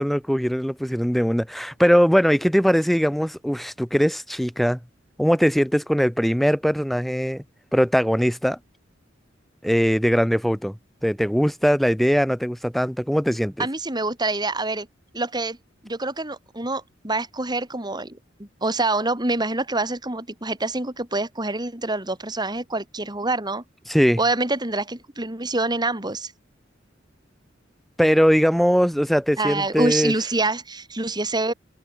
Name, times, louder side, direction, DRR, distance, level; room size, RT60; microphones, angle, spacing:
voice 1, 0.0-4.8 5.2-7.4 7.7-8.6 9.6-10.8 11.0-13.7 23.9-24.2 28.0-30.1, equal, ahead, 1.1 m, -20 dB
voice 2, 13.6-14.9 15.1-15.6 15.8-23.6 24.2-26.3 29.4-31.5, right 2 dB, 20° right, 4.3 m, -26 dB
head